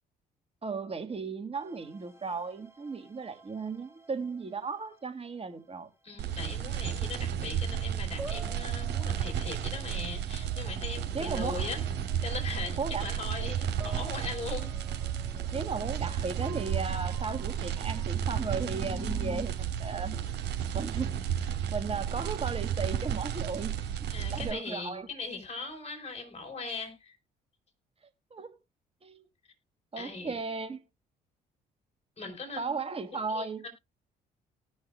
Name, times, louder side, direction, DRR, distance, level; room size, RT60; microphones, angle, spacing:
voice 1, 0.6-5.9 11.1-11.7 12.8-13.0 15.5-20.2 20.7-21.3 21.7-23.7 24.3-25.1 28.3-28.6 29.0-29.2 29.9-30.8 32.6-33.6, right 4 dB, 30° right, 1.7 m, -35 dB
sound 1, 1.5-5.4 6.6-7.1 7.6-19.5, right 2 dB, 15° right, 2.1 m, -46 dB
voice 2, 6.0-11.8 12.2-14.7 24.1-27.2 30.0-30.4 32.2-32.8 33.3-33.7, left 4 dB, 35° left, 4.5 m, -39 dB
sound 2, 6.2-24.5, right 9 dB, 70° right, 2.9 m, -33 dB
18.5 x 6.4 x 2.4 m
supercardioid pair, 60°, 18 cm